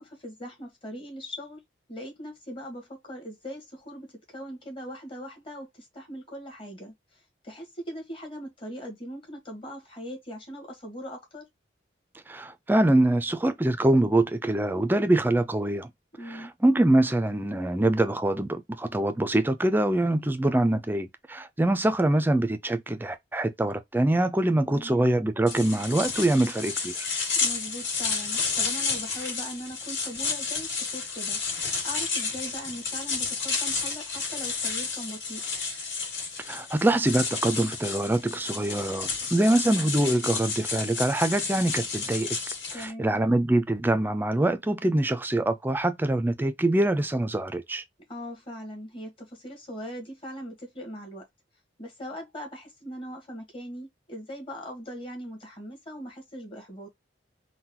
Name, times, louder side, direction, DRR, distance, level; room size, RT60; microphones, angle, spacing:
voice 1, 0.0-1.6 1.9-11.4 16.2-16.5 24.6-25.1 27.3-35.4 42.7-43.2 48.1-51.2 51.8-56.9, equal, 30° left, 1.3 m, -40 dB
voice 2, 12.3-15.9 16.3-27.0 36.5-42.3 42.7-47.8, right 1 dB, 10° right, 0.4 m, -24 dB
sound 1, 25.5-42.9, left 5 dB, 65° left, 2.0 m, -31 dB
3.8 x 2.2 x 2.8 m
head